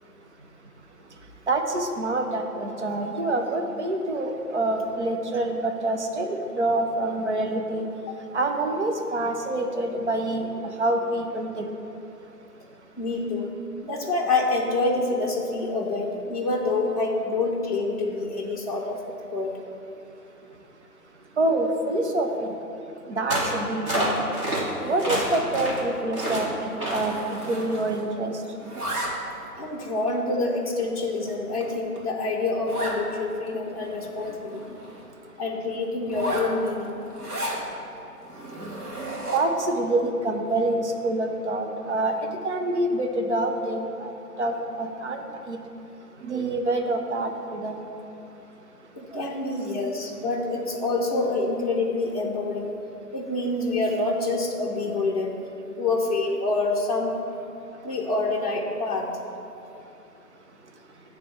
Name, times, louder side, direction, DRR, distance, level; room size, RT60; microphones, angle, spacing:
voice 1, 1.5-7.9 8.3-11.6 21.4-22.5 23.1-24.2 24.8-27.1 27.5-28.3 39.3-42.1 42.4-44.1 44.4-45.6 46.2-47.8 49.1-49.3, right 2 dB, 45° right, 4 dB, 0.8 m, -26 dB
voice 2, 13.0-13.5 13.8-19.0 19.3-19.6 29.5-34.8 35.4-37.0 48.9-52.7 53.1-55.4 55.8-57.1 57.8-59.1, left 3 dB, 25° left, -3 dB, 0.6 m, -27 dB
sound 1, 23.3-23.6 23.9-24.6 25.0-25.8 26.1-26.4 26.8-27.1, right 1 dB, 20° right, 1.2 m, -27 dB
Zipper (clothing), 24.7-25.7 26.0-26.2 26.5-28.2 28.4-29.5 30.1-30.2 30.8-30.9 31.3-31.4 31.6-31.7 32.0-32.1 32.7-33.0 33.5-33.6 33.8-35.1 36.0-37.6 38.2-39.6, right 1 dB, 65° right, 1.9 m, -34 dB
9.4 x 3.4 x 6.5 m, 2.9 s
figure-of-eight pair, 150°, 47 cm